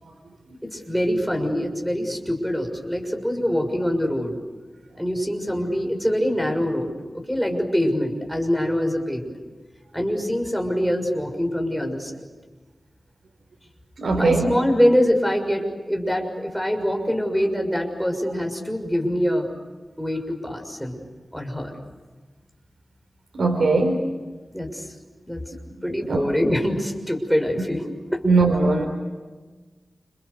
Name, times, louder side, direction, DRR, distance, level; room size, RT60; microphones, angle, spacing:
voice 1, 0.6-4.3 5.0-9.4 9.9-12.2 14.1-19.5 20.0-21.0 21.3-21.7 24.5-24.9 25.2-25.4 25.8-27.9 28.1-28.2, equal, ahead, 4 dB, 6.6 m, -24 dB
voice 2, 14.0-14.5 23.3-24.0 26.1-26.2 28.2-28.8, right 3 dB, 85° right, 2 dB, 3.9 m, -20 dB
30.0 x 29.0 x 6.8 m, 1.3 s
wide cardioid pair, 90°, 0 cm